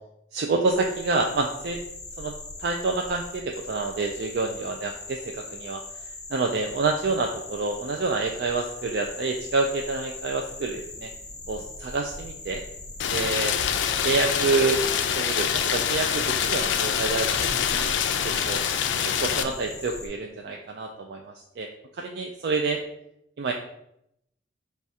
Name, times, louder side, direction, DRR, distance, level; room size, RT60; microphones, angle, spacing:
voice 1, 0.3-1.8 2.2-2.3 2.6-5.8 6.3-11.1 11.5-12.6 13.1-13.5 14.0-14.8 15.1-17.3 17.7-18.6 19.2-21.7 21.9-22.8 23.4-23.5, right 3 dB, 60° right, 2 dB, 0.4 m, -27 dB
sound 1, 0.6-20.1, left 2 dB, 20° left, 0.6 m, -41 dB
Rain, 13.0-19.4, left 8 dB, 80° left, 0.3 m, -25 dB
4.7 x 2.3 x 4.1 m, 0.78 s
head